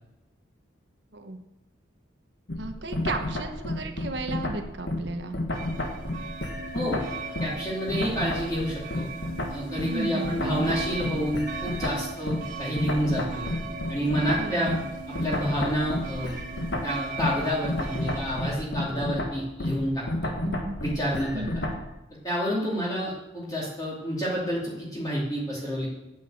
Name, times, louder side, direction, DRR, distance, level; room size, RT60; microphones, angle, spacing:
sound 1, 2.5-7.6 7.9-21.9, left 1 dB, 65° left, 1.6 m, -31 dB
voice 1, 2.6-5.4 9.9-10.3 14.4-14.7 20.4-20.8 21.3-21.5, right 2 dB, 65° right, 5 dB, 1.1 m, -34 dB
sound 2, 5.5-18.5, right 4 dB, 45° right, 1.6 m, -38 dB
voice 2, 7.4-9.1 9.5-13.4 13.9-14.7 15.2-16.4 16.8-20.3 20.8-21.6 22.2-25.9, equal, 20° left, -7 dB, 2.7 m, -29 dB
9.1 x 8.7 x 7.7 m, 0.95 s
head